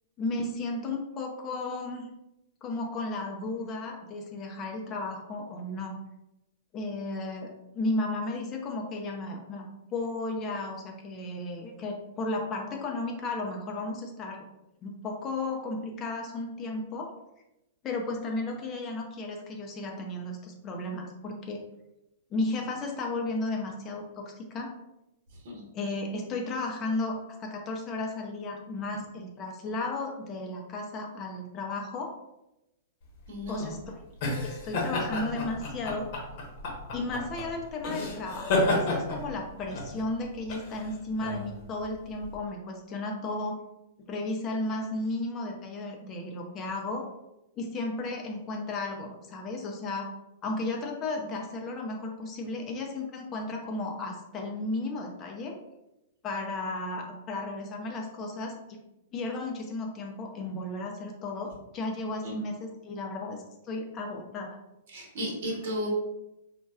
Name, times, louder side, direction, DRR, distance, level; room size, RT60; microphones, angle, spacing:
voice 1, 0.2-2.1 2.6-6.0 6.7-14.4 14.8-17.1 17.8-21.6 22.3-24.7 25.7-32.1 33.5-34.0 34.4-36.1 36.9-43.6 44.1-47.1 47.6-50.1 50.4-55.6 56.2-58.8 59.1-63.4 63.6-64.6, left 2 dB, 30° left, 1 dB, 0.5 m, -34 dB
sound 1, 33.1-42.3, left 2 dB, 50° left, 0.9 m, -31 dB
voice 2, 33.3-33.7 62.2-62.3 64.9-65.9, equal, 55° right, -1 dB, 1.1 m, -34 dB
4.0 x 2.2 x 2.3 m, 0.91 s
figure-of-eight pair, 105°, 0 cm